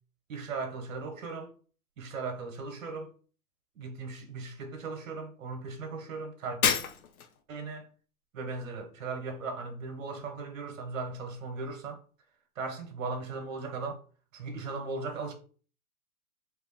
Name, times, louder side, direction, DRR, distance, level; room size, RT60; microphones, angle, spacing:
voice 1, 0.3-1.5 2.0-3.1 3.7-6.6 7.5-7.9 8.3-12.0 12.5-14.0 14.3-15.3, right 4 dB, 60° right, 1.5 m, -37 dB
Shatter, 6.6-7.4, left 8 dB, 70° left, 0.9 m, -28 dB
4.3 x 2.8 x 4.1 m
hypercardioid pair, 120°, 44 cm